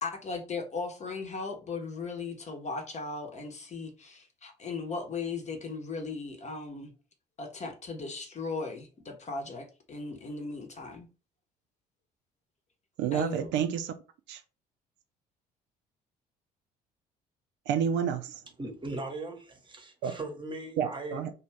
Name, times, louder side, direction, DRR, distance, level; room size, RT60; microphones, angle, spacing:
voice 1, 0.0-6.9 7.4-11.1 13.1-13.5, left 4 dB, 35° left, 0.9 m, -37 dB
voice 2, 13.0-13.9 14.3-14.4 17.7-18.4 20.0-20.1 20.8-21.3, right 8 dB, 55° right, 0.4 m, -29 dB
voice 3, 18.6-21.3, right 2 dB, 20° right, 1.0 m, -39 dB
2.5 x 2.3 x 3.2 m
figure-of-eight pair, 50°, 21 cm